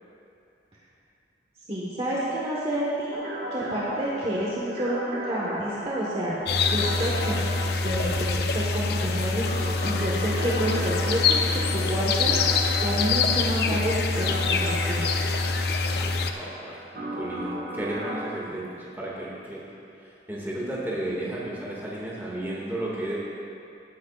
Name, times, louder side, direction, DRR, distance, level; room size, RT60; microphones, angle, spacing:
voice 1, 1.7-3.2 3.5-6.4 6.7-7.4 7.8-12.4 12.8-15.1, right 1 dB, 35° right, -6 dB, 1.3 m, -29 dB
sound 1, 3.1-18.3, right 1 dB, 60° right, 1.5 m, -36 dB
sound 2, 6.5-16.3, left 4 dB, 60° left, 0.5 m, -25 dB
voice 2, 15.9-19.7 19.9-23.2, right 1 dB, 10° right, -6 dB, 1.9 m, -33 dB
17.0 x 9.3 x 2.4 m, 2.6 s
head